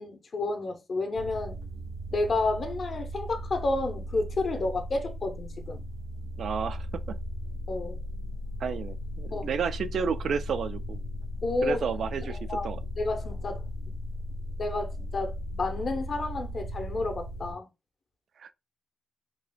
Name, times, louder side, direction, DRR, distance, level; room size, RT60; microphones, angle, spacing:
voice 1, 0.0-1.6 2.1-5.8 7.7-8.0 9.3-9.5 11.4-11.9 12.3-12.7 12.9-14.0 14.6-17.7, left 2 dB, 55° left, 0.8 m, -31 dB
sound 1, 1.1-17.5, equal, 85° right, 0.9 m, -37 dB
voice 2, 6.4-7.2 8.6-11.0 11.6-12.8 18.4-18.5, right 6 dB, 70° right, 0.3 m, -31 dB
3.8 x 2.4 x 2.2 m
supercardioid pair, 45°, 0 cm